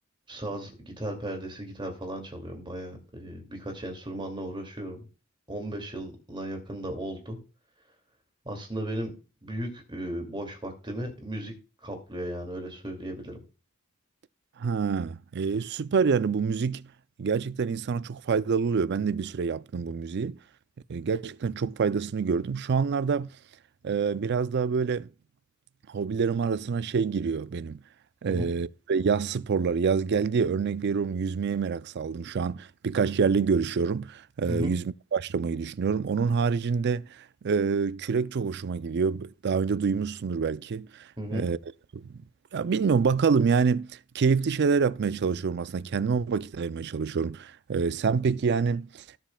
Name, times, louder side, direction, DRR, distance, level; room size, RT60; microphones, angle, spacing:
voice 1, 0.3-5.1 5.5-7.4 8.4-9.1 9.4-11.5 11.8-13.4 28.2-28.6 34.5-34.7 41.2-41.5, right 1 dB, 25° right, 2.4 m, -35 dB
voice 2, 14.6-16.9 17.2-20.4 20.9-23.3 23.8-25.1 25.9-27.8 28.2-41.6 41.9-42.1 42.5-49.0, right 5 dB, 55° right, 0.4 m, -27 dB
17.5 x 7.3 x 2.3 m
head